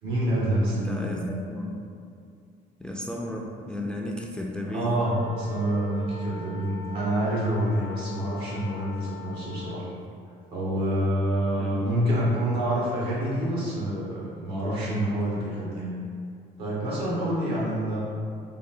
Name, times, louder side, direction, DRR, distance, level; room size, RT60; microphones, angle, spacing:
voice 1, 0.0-1.2 4.6-9.9 10.5-15.9 16.6-18.0, right 1 dB, 85° right, -6 dB, 1.2 m, -27 dB
voice 2, 0.8-1.2 1.5-1.8 2.8-5.0 11.6-11.8, left 1 dB, 5° left, -1 dB, 0.3 m, -34 dB
sound 1, 5.1-10.0, left 2 dB, 85° left, 0.4 m, -42 dB
3.8 x 2.1 x 3.7 m, 2.4 s
cardioid pair, 110°, 17 cm